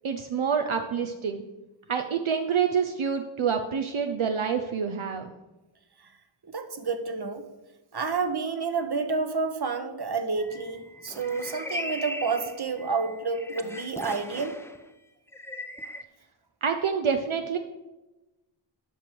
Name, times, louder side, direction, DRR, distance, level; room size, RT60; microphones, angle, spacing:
voice 1, 0.0-1.4 1.9-5.3 16.6-17.6, right 6 dB, 75° right, 5 dB, 0.8 m, -27 dB
voice 2, 6.4-7.4 7.9-14.5, right 4 dB, 50° right, 9 dB, 1.1 m, -29 dB
sound 1, 10.4-14.8 15.3-16.0, left 1 dB, 5° left, 0.6 m, -39 dB
8.0 x 6.2 x 7.6 m, 1.1 s
wide cardioid pair, 50°, 49 cm